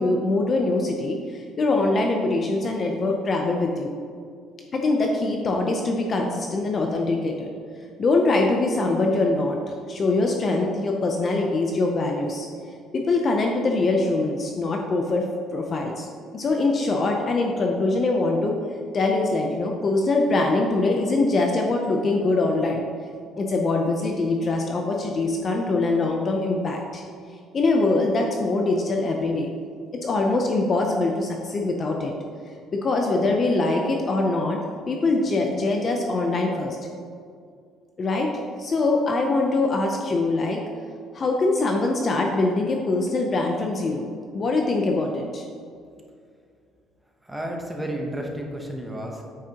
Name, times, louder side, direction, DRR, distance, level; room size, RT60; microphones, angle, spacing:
voice 1, 0.0-3.9 4.7-7.5 8.0-9.6 9.9-12.5 12.9-15.2 15.5-16.1 16.3-18.6 18.9-22.8 23.4-27.0 27.5-29.5 30.0-32.1 32.7-36.8 38.0-38.3 38.6-40.6 41.1-44.1 44.3-45.5, left 2 dB, 30° left, 1 dB, 0.5 m, -23 dB
voice 2, 47.2-49.2, right 1 dB, 5° right, -1 dB, 0.8 m, -32 dB
8.6 x 6.5 x 2.9 m, 2.3 s
cardioid pair, 175°, 0 cm